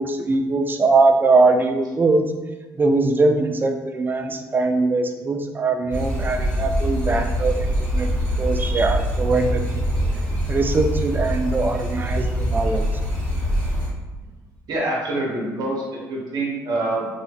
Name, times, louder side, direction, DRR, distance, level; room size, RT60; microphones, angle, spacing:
voice 1, 0.0-2.3 2.8-7.6 7.9-9.6 10.5-12.9, right 3 dB, 30° right, 5 dB, 0.3 m, -21 dB
sound 1, 5.9-13.9, equal, 10° left, 1.3 m, -24 dB
voice 2, 14.7-17.0, right 2 dB, 70° right, -3 dB, 0.9 m, -25 dB
3.0 x 2.3 x 2.8 m, 1.2 s
supercardioid pair, 75°, 7 cm